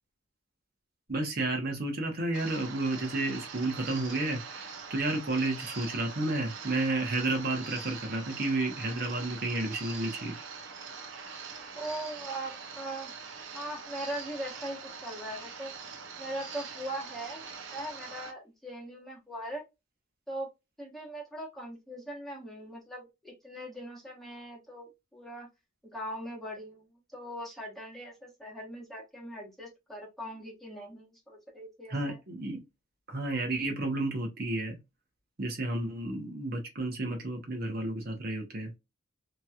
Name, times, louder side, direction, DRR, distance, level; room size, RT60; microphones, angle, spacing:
voice 1, 1.1-10.4 31.9-32.6 33.1-34.8 35.4-38.7, right 2 dB, 50° right, 0.9 m, -31 dB
sound 1, 2.3-18.3, right 5 dB, 75° right, 0.7 m, -43 dB
voice 2, 11.7-13.1 13.5-15.7 16.2-17.5 17.7-19.6 20.3-20.5 20.8-25.5 25.8-32.2, right 1 dB, ahead, 1.0 m, -40 dB
3.0 x 2.8 x 2.3 m
head